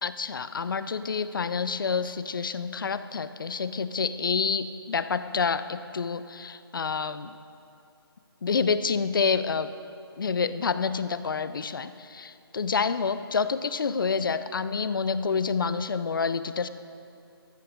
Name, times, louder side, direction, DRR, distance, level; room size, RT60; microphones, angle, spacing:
voice 1, 0.0-7.3 8.4-9.7 10.2-16.7, left 5 dB, 55° left, 13 dB, 0.7 m, -28 dB
14.0 x 13.5 x 5.2 m, 2.6 s
figure-of-eight pair, 155°, 13 cm